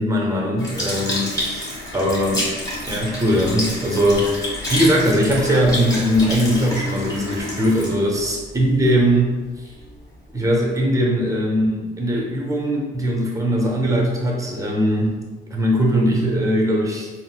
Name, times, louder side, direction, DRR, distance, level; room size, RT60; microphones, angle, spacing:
voice 1, 0.0-2.5 2.9-9.4 10.3-17.1, equal, 15° right, -1 dB, 0.7 m, -20 dB
Sink (filling or washing) / Liquid, 0.6-9.2 9.8-9.9, left 1 dB, 20° left, 1.3 m, -28 dB
3.8 x 2.1 x 2.3 m, 1.3 s
cardioid pair, 90°, 20 cm